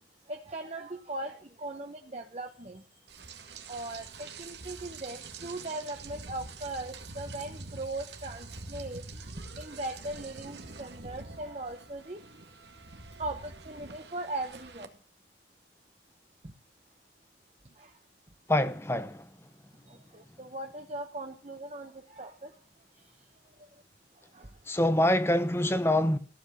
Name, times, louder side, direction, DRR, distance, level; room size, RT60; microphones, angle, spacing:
voice 1, 0.3-2.8 3.7-9.0 9.6-12.2 13.2-14.9 16.4-16.5 17.8-17.9 19.9-22.5 24.3-24.5, right 2 dB, 35° right, 1.2 m, -39 dB
Rain, 3.1-14.9, right 3 dB, 70° right, 2.1 m, -45 dB
voice 2, 18.5-19.2 24.7-26.2, left 1 dB, 15° left, 0.9 m, -25 dB
15.5 x 8.1 x 8.1 m
head